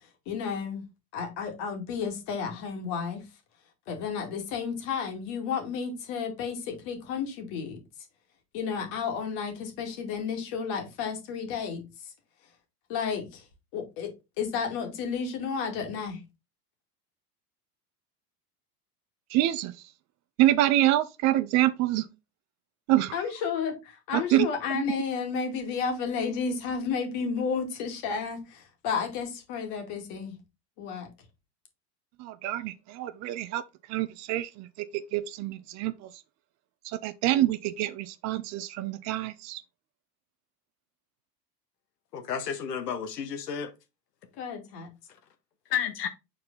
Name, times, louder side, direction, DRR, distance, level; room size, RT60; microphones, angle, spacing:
voice 1, 0.3-0.9 1.1-3.2 3.9-7.8 8.5-11.8 12.9-13.4 13.7-16.2 23.1-30.4 30.8-31.1 44.4-44.9, left 6 dB, 55° left, 2.3 m, -32 dB
voice 2, 19.3-19.7 20.4-22.1 22.9-23.1 24.1-24.5 24.7-24.8 32.2-33.6 33.9-36.1 36.8-39.6, right 14 dB, 35° right, 0.5 m, -26 dB
voice 3, 42.1-43.7 45.7-46.1, left 8 dB, 80° left, 1.1 m, -31 dB
6.2 x 4.3 x 4.0 m
hypercardioid pair, 85°, 47 cm